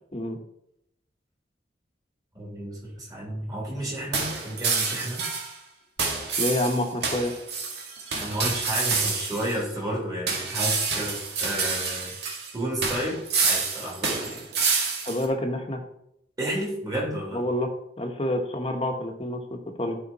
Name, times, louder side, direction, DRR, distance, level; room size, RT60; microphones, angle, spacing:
voice 1, 2.3-5.2 8.1-12.2 12.5-14.4 16.4-17.4, right 1 dB, 20° right, -3 dB, 3.1 m, -31 dB
sound 1, 4.1-5.5 6.0-9.6 10.3-12.5 12.8-15.2, right 4 dB, 70° right, 2.0 m, -28 dB
voice 2, 6.4-7.3 15.0-15.8 17.3-17.7 18.0-20.0, left 1 dB, 30° left, 3 dB, 1.2 m, -28 dB
12.5 x 5.1 x 4.2 m, 0.78 s
head